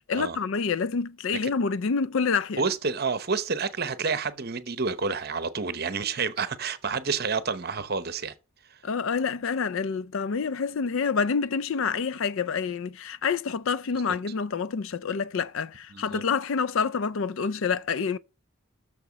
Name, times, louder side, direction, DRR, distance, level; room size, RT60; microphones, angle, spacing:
voice 1, 0.0-2.6 8.8-18.2, left 5 dB, 60° left, 0.4 m, -27 dB
voice 2, 2.6-8.3 15.9-16.2, right 5 dB, 45° right, 0.8 m, -29 dB
6.7 x 6.6 x 6.2 m
head